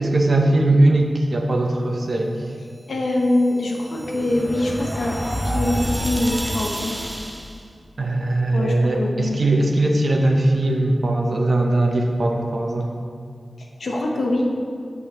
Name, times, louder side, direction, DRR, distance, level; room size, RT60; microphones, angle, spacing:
voice 1, 0.0-2.3 8.0-12.9, right 2 dB, 60° right, 2 dB, 0.7 m, -20 dB
voice 2, 2.9-6.9 8.5-9.4 13.6-14.4, left 1 dB, 85° left, 0 dB, 0.8 m, -24 dB
sound 1, 3.1-7.6, equal, 15° right, 0.7 m, -28 dB
8.1 x 5.5 x 3.0 m, 2.2 s
wide cardioid pair, 70°, 0 cm